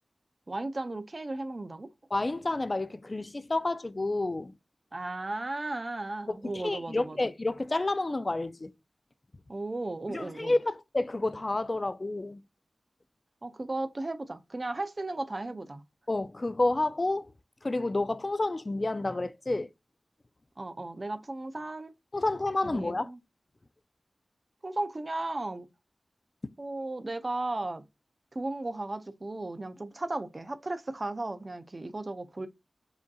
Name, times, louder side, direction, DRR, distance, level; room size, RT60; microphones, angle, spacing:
voice 1, 0.5-1.9 4.9-7.2 9.5-10.5 13.4-15.8 20.6-21.9 22.6-23.2 24.6-25.7 26.6-27.8 28.3-32.5, right 2 dB, 45° right, 0.4 m, -35 dB
voice 2, 2.1-4.5 6.4-8.7 10.1-12.4 16.1-17.3 17.6-19.7 22.1-23.1, left 2 dB, 40° left, 0.3 m, -30 dB
4.9 x 2.7 x 2.2 m
cardioid pair, 45°, 0 cm